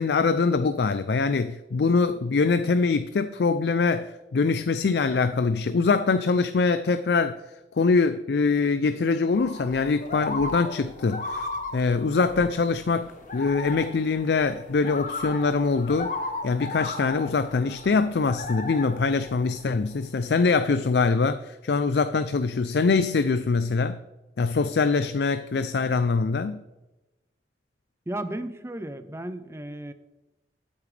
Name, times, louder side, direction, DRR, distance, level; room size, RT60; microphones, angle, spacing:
voice 1, 0.0-7.4 7.8-16.1 16.4-24.0 24.4-26.6, left 4 dB, 65° left, 0.4 m, -23 dB
sound 1, 9.3-20.2, left 3 dB, 45° left, 1.3 m, -36 dB
voice 2, 28.1-29.9, right 1 dB, 15° right, 0.6 m, -34 dB
13.0 x 8.7 x 3.3 m
head